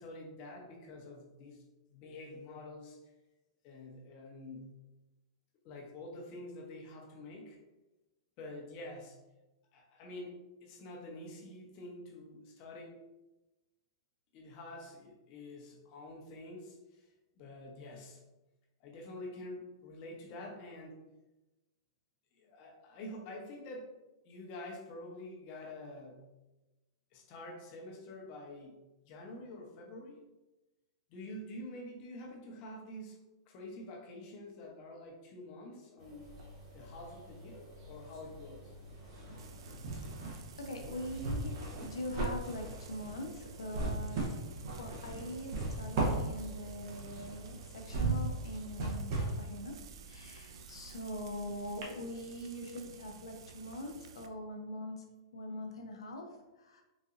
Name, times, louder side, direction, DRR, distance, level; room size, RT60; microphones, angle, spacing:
voice 1, 0.0-1.6 1.9-3.0 3.6-4.8 5.6-7.6 8.4-9.2 9.7-13.0 14.3-17.0 17.4-18.2 18.8-21.0 22.3-24.0 24.2-26.3 27.1-30.2 31.1-33.2 33.5-36.3 36.7-38.7, left 1 dB, 40° left, 0 dB, 0.8 m, -47 dB
sound 1, 36.0-48.9, left 1 dB, 35° right, 1.4 m, -53 dB
sound 2, 36.2-37.3 37.6-51.4 51.8-51.9, right 2 dB, 55° right, 0.8 m, -38 dB
Frying (food), 39.4-54.3, right 6 dB, 75° right, 0.3 m, -53 dB
voice 2, 40.2-44.2 44.8-49.8 50.0-55.0 55.3-56.8, equal, 85° left, 3 dB, 0.6 m, -43 dB
4.0 x 2.6 x 2.5 m, 1.1 s
hypercardioid pair, 135°, 3 cm